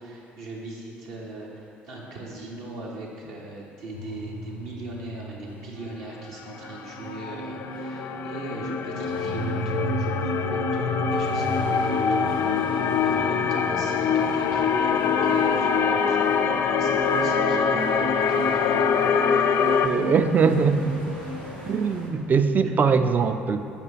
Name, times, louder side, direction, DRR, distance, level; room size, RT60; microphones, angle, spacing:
voice 1, 0.0-16.2 16.6-19.8 22.6-22.7, right 2 dB, 60° right, -4 dB, 1.0 m, -39 dB
sound 1, 3.9-22.8, left 1 dB, 80° left, 0.6 m, -34 dB
sound 2, 6.6-19.9, left 6 dB, 45° left, 0.3 m, -24 dB
sound 3, 11.1-22.1, right 1 dB, 85° right, 1.1 m, -44 dB
voice 2, 19.8-21.2 21.7-23.6, right 5 dB, 35° right, 9 dB, 0.4 m, -22 dB
7.0 x 5.1 x 4.1 m, 2.7 s
figure-of-eight pair, 55°, 5 cm